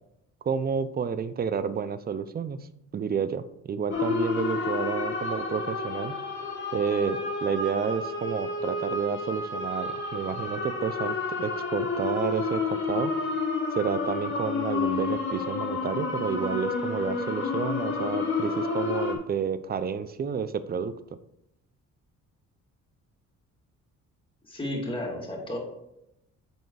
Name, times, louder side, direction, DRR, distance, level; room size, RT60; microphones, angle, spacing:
voice 1, 0.4-2.6 2.9-6.2 6.7-13.1 13.7-20.9, right 6 dB, 30° right, 14 dB, 0.5 m, -30 dB
sound 1, 3.9-19.1, left 4 dB, 40° left, 2.1 m, -30 dB
voice 2, 24.4-25.6, left 1 dB, 15° left, -2 dB, 2.7 m, -32 dB
8.1 x 4.5 x 4.7 m, 0.82 s
cardioid pair, 90°, 30 cm